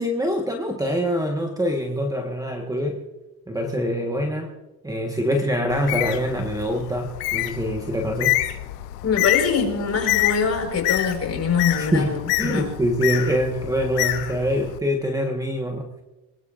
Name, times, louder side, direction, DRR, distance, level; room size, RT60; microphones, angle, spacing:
voice 1, 0.0-3.0 3.5-4.5 4.8-8.4 11.8-16.0, equal, 10° right, 3 dB, 1.4 m, -24 dB
Bird, 5.7-14.8, left 16 dB, 85° left, 1.1 m, -27 dB
voice 2, 9.0-12.7, left 6 dB, 35° left, 3 dB, 4.8 m, -23 dB
22.5 x 20.0 x 2.6 m, 1.1 s
supercardioid pair, 95°, 44 cm